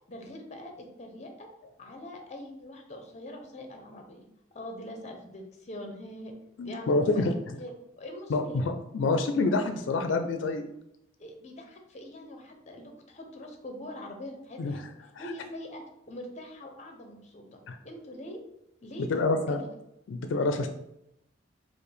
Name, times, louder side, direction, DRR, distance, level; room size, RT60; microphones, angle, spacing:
voice 1, 0.1-1.5 1.8-6.3 6.6-7.3 7.6-8.6 11.2-14.8 15.2-18.4 18.8-19.7, left 1 dB, 40° left, 3 dB, 0.6 m, -43 dB
voice 2, 6.6-7.6 8.3-10.6 14.6-14.7 15.2-15.3 17.7-17.8 19.1-19.6 20.1-20.7, left 3 dB, 90° left, 6 dB, 0.4 m, -27 dB
4.6 x 2.0 x 3.3 m, 0.81 s
head